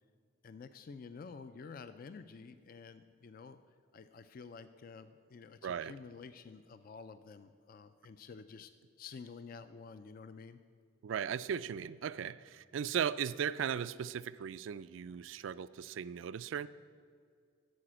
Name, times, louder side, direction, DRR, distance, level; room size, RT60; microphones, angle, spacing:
voice 1, 0.4-3.6 3.9-8.7 9.0-10.6, left 5 dB, 45° left, 11 dB, 0.4 m, -50 dB
voice 2, 5.6-5.9 11.0-16.7, right 8 dB, 75° right, 16 dB, 0.3 m, -37 dB
12.5 x 5.0 x 8.7 m, 2.1 s
head